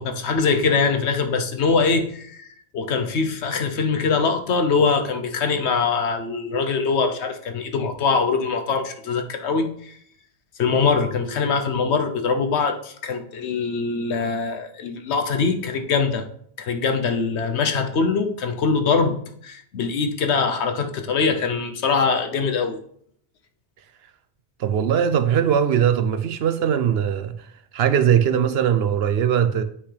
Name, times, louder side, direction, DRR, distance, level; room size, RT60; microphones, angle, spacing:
voice 1, 0.0-2.5 2.7-10.0 10.6-16.2 16.6-19.2 19.4-22.8, left 5 dB, 90° left, 1.1 m, -23 dB
voice 2, 24.6-27.3 27.7-29.6, right 8 dB, 70° right, 0.9 m, -20 dB
8.3 x 5.7 x 3.3 m
omnidirectional pair, 1.1 m